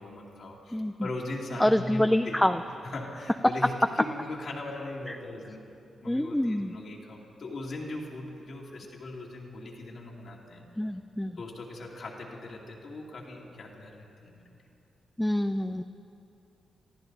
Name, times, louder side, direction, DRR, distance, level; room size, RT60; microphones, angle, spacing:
voice 1, 0.0-2.5 2.8-5.6 6.0-10.7 11.4-14.5, left 2 dB, 65° left, -3 dB, 2.6 m, -39 dB
voice 2, 0.7-1.1 1.6-2.6 5.1-5.2 6.0-6.7 10.8-11.4 15.2-15.8, left 1 dB, 10° left, 7 dB, 0.5 m, -26 dB
24.5 x 14.5 x 4.0 m, 2.7 s
supercardioid pair, 45°, 0 cm